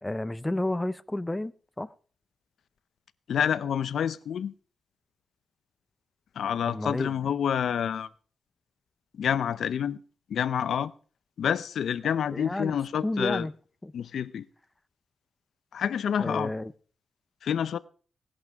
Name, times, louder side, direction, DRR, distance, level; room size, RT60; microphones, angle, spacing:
voice 1, 0.0-1.5 1.8-1.9 6.7-7.1 12.3-12.7 13.0-13.5 13.8-13.9 16.2-16.7, left 1 dB, 10° left, 0.5 m, -31 dB
voice 2, 3.3-4.5 6.3-8.1 9.1-10.0 10.3-10.9 11.4-13.5 13.9-14.5 15.7-16.5 17.4-17.8, left 8 dB, 85° left, 0.6 m, -28 dB
17.5 x 11.0 x 3.5 m
wide cardioid pair, 120°, 0 cm